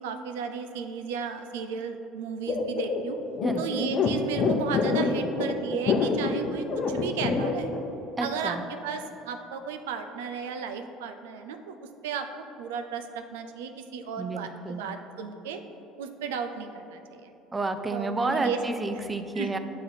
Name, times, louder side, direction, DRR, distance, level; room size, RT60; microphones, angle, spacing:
voice 1, 0.0-3.2 3.6-7.7 8.2-11.8 12.0-12.3 12.6-15.6 16.0-17.3 17.9-19.0 19.4-19.5, right 6 dB, 85° right, 7 dB, 0.4 m, -34 dB
sound 1, 2.5-7.8, left 4 dB, 50° left, 0.7 m, -26 dB
voice 2, 3.4-3.9 8.2-8.6 14.2-14.8 17.5-19.6, right 2 dB, 20° right, 8 dB, 0.4 m, -30 dB
7.5 x 2.8 x 5.6 m, 2.9 s
hypercardioid pair, 80°, 0 cm